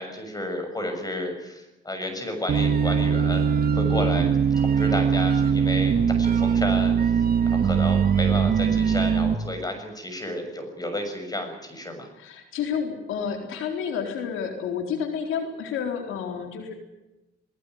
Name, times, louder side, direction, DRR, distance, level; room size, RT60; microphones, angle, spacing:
voice 1, 0.0-12.1, left 1 dB, 20° left, 6 dB, 6.7 m, -32 dB
sound 1, 2.5-9.3, right 7 dB, 50° right, 1.6 m, -21 dB
voice 2, 12.2-16.7, left 7 dB, 90° left, 4 dB, 4.0 m, -30 dB
20.5 x 19.5 x 9.4 m, 1.0 s
cardioid pair, 90°, 20 cm